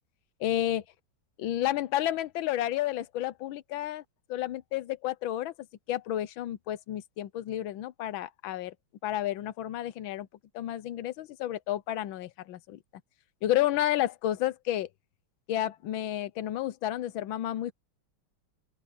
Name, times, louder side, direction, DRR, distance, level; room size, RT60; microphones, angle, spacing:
voice 1, 0.4-0.8 1.4-4.0 4.3-5.5 5.9-8.7 9.0-10.3 10.5-12.8 13.4-14.9 15.5-17.7, left 13 dB, 85° left, 1.5 m, -31 dB
open air
omnidirectional pair, 2.1 m